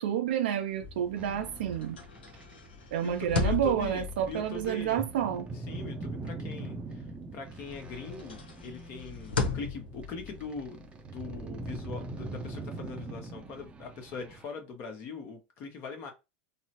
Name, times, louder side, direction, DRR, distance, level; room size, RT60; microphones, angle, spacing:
voice 1, 0.0-2.0 2.9-5.5, right 10 dB, 75° right, 0.4 m, -29 dB
sound 1, 0.7-7.2 7.5-12.9, left 4 dB, 85° left, 0.8 m, -38 dB
sound 2, 1.1-14.4, right 2 dB, 20° right, 0.5 m, -42 dB
voice 2, 2.8-5.0 5.7-7.1 7.3-10.9 11.1-16.1, left 4 dB, 45° left, 0.9 m, -41 dB
3.8 x 2.0 x 2.8 m
hypercardioid pair, 100°, 5 cm